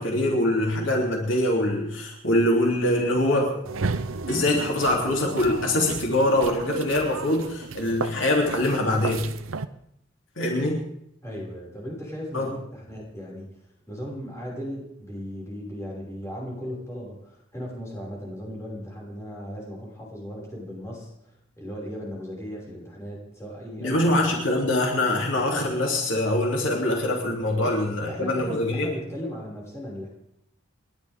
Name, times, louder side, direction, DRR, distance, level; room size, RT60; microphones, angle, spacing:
voice 1, 0.0-3.5 4.3-9.3 10.4-10.8 12.3-12.5 23.8-28.9, left 1 dB, 70° left, -1 dB, 3.2 m, -23 dB
sound 1, 3.6-9.7, right 4 dB, 90° right, 0.7 m, -33 dB
voice 2, 11.2-13.5 13.9-21.1 21.6-24.4 27.6-30.1, equal, 15° left, -4 dB, 6.1 m, -37 dB
29.5 x 12.0 x 3.7 m, 0.74 s
head